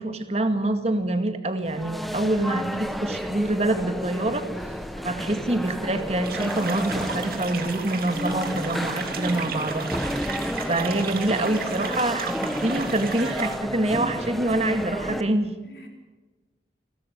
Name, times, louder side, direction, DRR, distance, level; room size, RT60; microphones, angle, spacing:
voice 1, 0.0-4.5 5.0-9.9 10.7-15.5, right 2 dB, 35° right, 8 dB, 2.1 m, -26 dB
sound 1, 1.6-15.2, equal, ahead, 1.2 m, -31 dB
sound 2, 6.2-13.6, right 6 dB, 55° right, 2.4 m, -35 dB
voice 2, 10.7-11.1 15.6-15.9, left 1 dB, 60° left, 3 dB, 4.1 m, -46 dB
29.0 x 12.5 x 9.4 m, 1.2 s
head